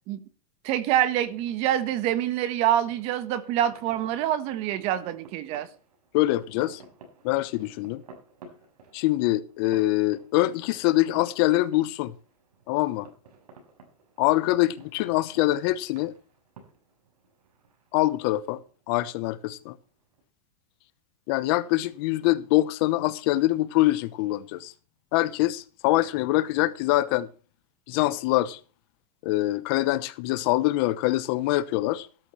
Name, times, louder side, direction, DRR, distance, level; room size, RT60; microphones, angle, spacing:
voice 1, 0.6-5.7, right 11 dB, 30° right, 1.3 m, -26 dB
sound 1, 0.9-20.2, right 3 dB, 80° right, 6.8 m, -54 dB
voice 2, 6.1-6.8 7.2-8.0 8.9-12.1 12.7-13.1 14.2-16.1 17.9-18.6 18.9-19.7 21.3-24.7 25.1-27.3 27.9-28.6 29.2-32.1, left 17 dB, 40° left, 0.9 m, -24 dB
14.5 x 13.0 x 3.2 m
supercardioid pair, 165°, 19 cm